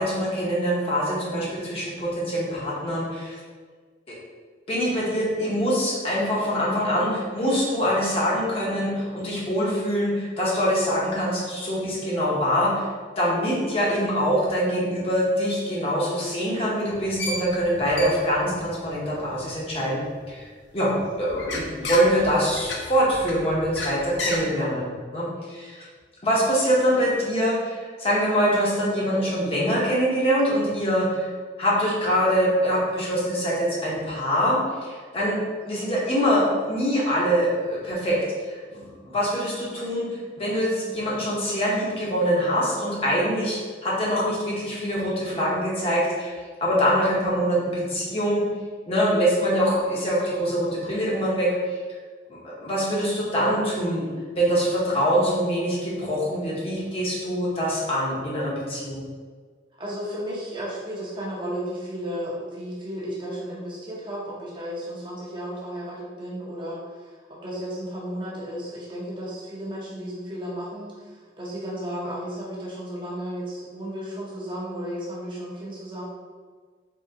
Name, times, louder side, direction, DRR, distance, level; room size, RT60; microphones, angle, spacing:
voice 1, 0.0-3.4 4.7-12.8 13.2-20.4 20.7-20.9 21.2-25.8 26.2-31.3 31.6-35.4 35.6-38.2 38.5-40.1 40.4-46.3 46.6-48.5 48.9-51.5 52.3-54.1 54.3-59.0, equal, 30° left, -5 dB, 0.7 m, -24 dB
sound 1, 16.9-20.3 20.8-24.4, left 2 dB, 85° left, 0.6 m, -33 dB
voice 2, 59.8-76.0, equal, 25° right, -6 dB, 0.6 m, -34 dB
3.6 x 2.9 x 2.7 m, 1.5 s
head